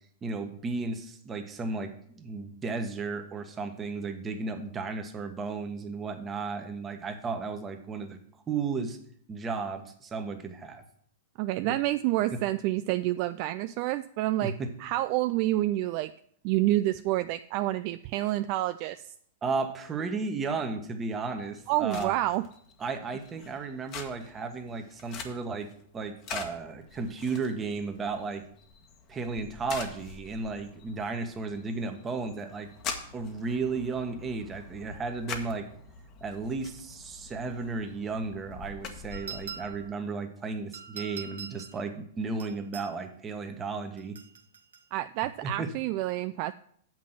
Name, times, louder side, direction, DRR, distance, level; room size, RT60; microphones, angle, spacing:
voice 1, 0.2-8.2 8.5-9.0 9.3-10.8 11.6-11.8 14.4-14.7 19.4-22.1 22.8-25.7 25.9-28.4 29.1-32.7 33.1-35.7 36.2-44.2 45.4-45.7, right 4 dB, 20° right, 6 dB, 1.3 m, -34 dB
voice 2, 11.4-14.5 14.8-16.1 16.4-19.1 21.7-22.5 44.9-46.5, right 16 dB, 50° right, 11 dB, 0.3 m, -28 dB
sound 1, 21.2-39.9, left 5 dB, 40° left, 1.4 m, -45 dB
sound 2, 39.1-39.9 40.7-41.8 42.4-42.9 44.0-44.9, right 6 dB, 85° right, 1.0 m, -43 dB
7.5 x 6.1 x 7.4 m, 0.63 s
hypercardioid pair, 115°, 0 cm